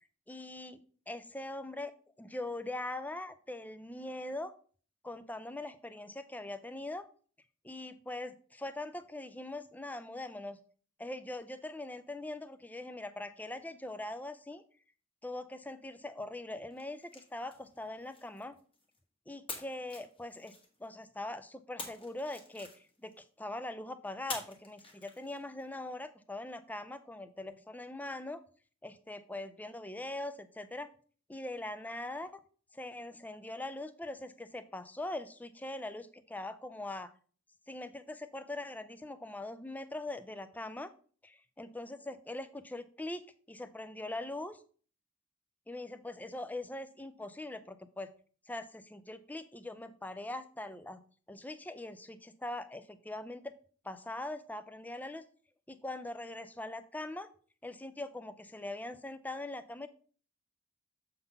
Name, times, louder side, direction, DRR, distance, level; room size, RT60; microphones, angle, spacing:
voice 1, 0.3-0.8 1.1-1.9 2.2-4.5 5.0-7.1 7.6-10.6 11.0-14.6 15.2-18.5 19.3-20.5 20.8-22.7 23.0-28.4 28.8-30.9 31.3-32.4 32.7-37.1 37.7-40.9 41.6-44.6 45.7-48.1 48.5-51.0 51.3-53.5 53.8-55.3 55.7-57.3 57.6-59.9, left 2 dB, 10° left, 12 dB, 0.4 m, -42 dB
sound 1, 16.7-19.0 19.5-21.0 21.8-23.2 24.3-25.6, left 3 dB, 25° left, 1.5 m, -47 dB
7.0 x 3.9 x 5.3 m, 0.43 s
head